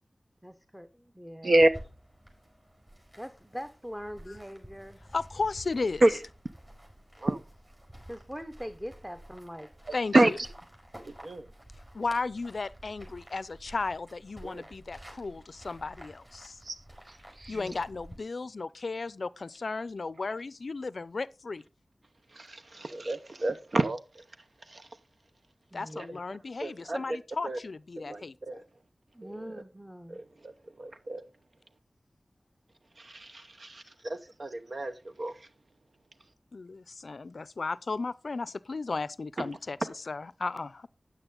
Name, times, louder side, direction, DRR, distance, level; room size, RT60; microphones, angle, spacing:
voice 1, 0.4-1.6 3.2-5.0 8.1-9.7 17.5-17.8 25.7-26.2 29.1-30.2, equal, 5° right, 0.9 m, -42 dB
sound 1, 1.6-18.2, equal, 30° right, 5.6 m, -51 dB
voice 2, 5.1-6.0 9.9-10.4 11.9-16.6 17.5-21.6 25.7-28.6 36.5-40.9, left 3 dB, 75° left, 0.4 m, -35 dB
voice 3, 11.0-11.5 14.4-14.6 16.6-16.8 17.4-17.6 22.3-24.2 24.7-24.9 25.9-26.1 26.6-27.0 27.4-27.6 28.0-28.6 29.2-29.3 30.1-30.5 30.8-31.2 33.0-34.9 35.2-35.3 39.4-39.5, right 1 dB, 65° right, 0.8 m, -28 dB
9.6 x 9.0 x 3.8 m
wide cardioid pair, 50°, 0 cm